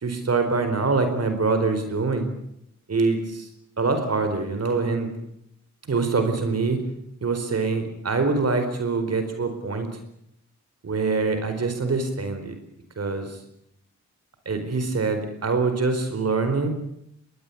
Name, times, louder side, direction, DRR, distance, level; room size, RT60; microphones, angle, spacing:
voice 1, 0.0-2.3 2.9-3.5 3.8-5.1 5.9-6.8 7.2-9.9 10.8-12.6 13.0-13.4 14.5-16.7, right 4 dB, 60° right, 7 dB, 4.4 m, -24 dB
23.0 x 19.5 x 8.6 m, 0.77 s
cardioid pair, 80°, 29 cm